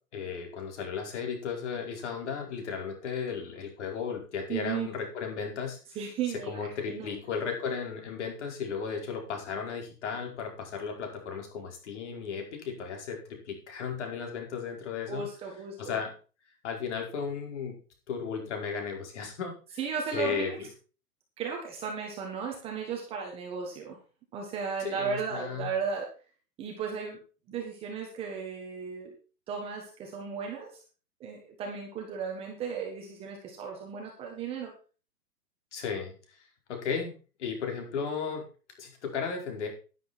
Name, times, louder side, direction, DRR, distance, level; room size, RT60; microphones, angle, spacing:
voice 1, 0.1-5.8 6.5-15.3 15.8-16.1 16.6-17.8 18.1-19.8 20.1-20.7 24.8-25.7 35.7-36.1 36.7-37.1 37.4-38.5 38.8-39.7, left 6 dB, 45° left, 2 dB, 5.0 m, -35 dB
voice 2, 4.5-4.9 5.9-7.1 15.1-16.0 19.8-20.6 21.4-24.0 24.3-26.1 26.6-27.2 27.5-29.1 29.5-30.8 31.2-34.7, right 6 dB, 10° right, 1 dB, 1.5 m, -35 dB
11.5 x 10.5 x 4.4 m, 0.36 s
hypercardioid pair, 165°, 46 cm